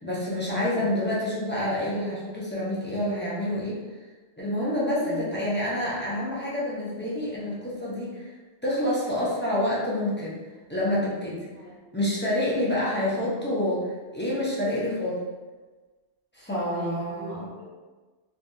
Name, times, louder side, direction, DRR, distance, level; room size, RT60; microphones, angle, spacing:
voice 1, 0.0-3.8 4.4-8.3 8.6-10.4 10.7-11.5 11.9-15.2 16.3-17.4, left 1 dB, 15° left, -8 dB, 0.5 m, -28 dB
voice 2, 5.0-5.3 11.5-12.0 13.0-13.5 16.7-17.7, right 1 dB, 55° right, -4 dB, 0.8 m, -39 dB
3.5 x 2.3 x 2.6 m, 1.3 s
omnidirectional pair, 1.2 m